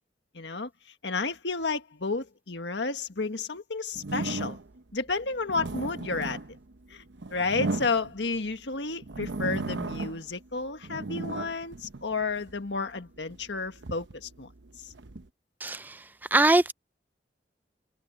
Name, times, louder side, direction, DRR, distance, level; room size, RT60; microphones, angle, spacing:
voice 1, 0.3-0.7 1.0-4.6 4.9-6.4 6.9-7.0 7.3-14.5 14.8-14.9, left 4 dB, 80° left, 1.6 m, -31 dB
sound 1, 3.9-4.8 5.3-8.5 9.0-10.3 10.7-12.6 13.2-15.3, right 2 dB, 85° right, 0.9 m, -35 dB
voice 2, 15.6-16.0 16.3-16.7, right 2 dB, 10° right, 0.4 m, -22 dB
head